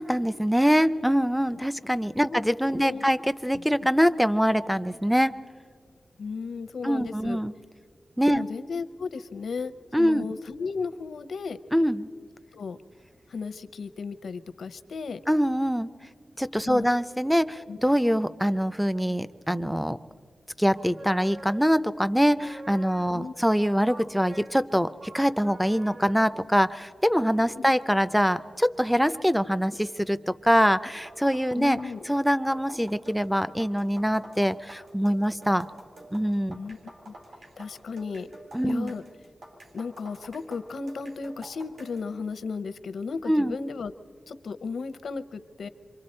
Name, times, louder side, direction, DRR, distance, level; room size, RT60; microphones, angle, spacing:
voice 1, 0.0-5.3 6.8-7.5 8.2-8.4 9.9-10.2 11.7-12.1 15.3-15.9 16.4-20.0 20.6-30.2 30.4-31.8 32.1-35.7 36.1-36.6 38.5-38.9 43.3-43.6, equal, ahead, 12 dB, 0.4 m, -24 dB
voice 2, 2.7-3.1 3.5-3.6 6.2-7.4 8.3-9.7 10.0-11.6 12.5-12.8 13.3-15.2 16.7-16.9 17.3-17.8 23.1-23.5 27.5-27.7 31.6-32.1 36.5-37.1 37.6-38.3 38.6-39.0 39.7-43.9 44.3-45.7, left 4 dB, 85° left, 13 dB, 0.7 m, -35 dB
sound 1, 20.7-22.0 22.2-23.4 23.8-26.4, right 2 dB, 40° right, 1.1 m, -46 dB
sound 2, 30.5-42.1, right 1 dB, 75° right, 3.9 m, -48 dB
27.5 x 24.5 x 4.3 m, 2.1 s
wide cardioid pair, 170°, 0 cm